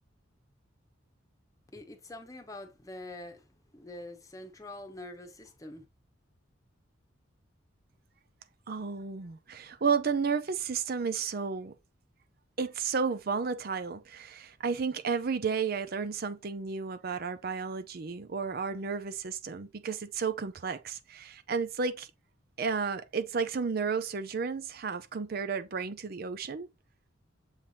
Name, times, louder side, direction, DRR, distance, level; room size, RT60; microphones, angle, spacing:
voice 1, 1.7-3.5 3.7-5.8, left 2 dB, 15° left, 1.0 m, -45 dB
voice 2, 8.7-11.7 12.6-22.1 22.6-26.7, right 5 dB, 50° right, 0.5 m, -32 dB
7.2 x 3.3 x 4.1 m
head